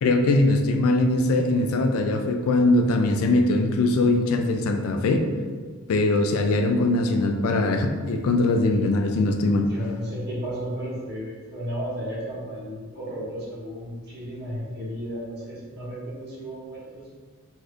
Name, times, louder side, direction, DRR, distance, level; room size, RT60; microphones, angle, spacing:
voice 1, 0.0-5.2 5.9-9.7, left 2 dB, 70° left, 5 dB, 0.3 m, -21 dB
voice 2, 9.5-17.0, equal, 50° right, -7 dB, 1.0 m, -34 dB
2.6 x 2.4 x 3.3 m, 1.5 s
head